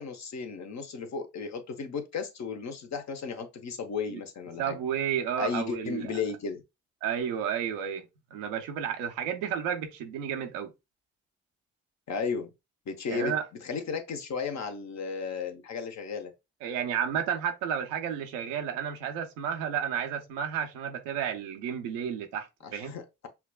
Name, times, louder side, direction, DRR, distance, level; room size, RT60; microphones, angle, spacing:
voice 1, 0.0-4.8 5.4-6.6 12.1-12.5 12.9-13.3 13.6-16.3 22.6-23.3, left 5 dB, 60° left, 0.9 m, -34 dB
voice 2, 4.6-6.2 7.0-8.1 8.3-10.7 13.1-13.5 16.6-22.9, right 8 dB, 90° right, 0.6 m, -32 dB
5.7 x 2.3 x 2.2 m
hypercardioid pair, 40°, 31 cm